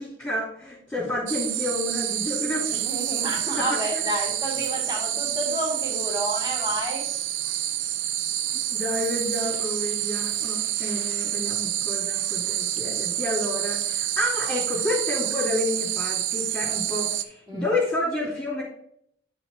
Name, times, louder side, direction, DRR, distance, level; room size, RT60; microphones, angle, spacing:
voice 1, 0.0-2.8 3.6-3.7 3.9-4.0 8.7-18.6, left 1 dB, 10° left, -8 dB, 2.8 m, -30 dB
sound 1, 1.3-17.2, right 11 dB, 85° right, 0.6 m, -28 dB
voice 2, 2.7-7.0 17.5-17.7, equal, 20° right, -6 dB, 3.5 m, -30 dB
10.5 x 4.3 x 3.6 m, 0.69 s
head